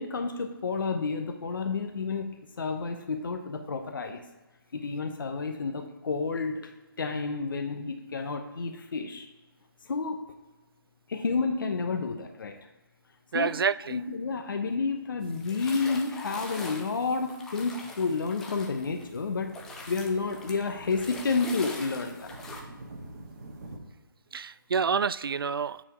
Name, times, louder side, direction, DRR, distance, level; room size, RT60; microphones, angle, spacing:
voice 1, 0.0-4.2 4.7-6.7 7.0-9.3 9.8-10.3 11.1-12.6 13.3-13.6 13.9-19.6 19.9-22.3, left 4 dB, 65° left, 5 dB, 0.9 m, -30 dB
voice 2, 13.3-14.0 24.3-25.8, right 6 dB, 75° right, 18 dB, 0.4 m, -28 dB
sound 1, 15.2-19.2 19.5-22.6, left 3 dB, 5° left, 0.4 m, -43 dB
sound 2, 18.8-23.8, right 2 dB, 45° right, 1.7 m, -47 dB
9.1 x 4.4 x 4.8 m, 1.1 s
hypercardioid pair, 160°, 12 cm